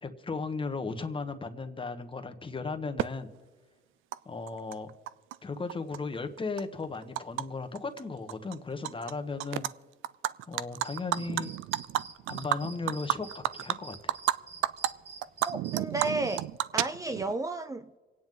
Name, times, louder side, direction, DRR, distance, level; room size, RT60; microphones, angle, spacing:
voice 1, 0.0-3.3 4.2-4.9 5.4-9.7 10.5-11.5 12.3-14.1, left 4 dB, 25° left, 1.4 m, -36 dB
Animal, 3.0-3.1 4.1-4.2 4.5-5.4 5.7-7.4 7.8-8.0 8.3-9.1 9.4-9.7 10.0-14.4 14.6-14.9 15.2-17.3, right 14 dB, 90° right, 0.4 m, -31 dB
sound 1, 10.8-16.5, right 4 dB, 60° right, 2.9 m, -49 dB
voice 2, 15.5-16.4 16.7-18.0, right 2 dB, 15° right, 0.5 m, -32 dB
26.5 x 9.4 x 3.9 m
cardioid pair, 90°, 20 cm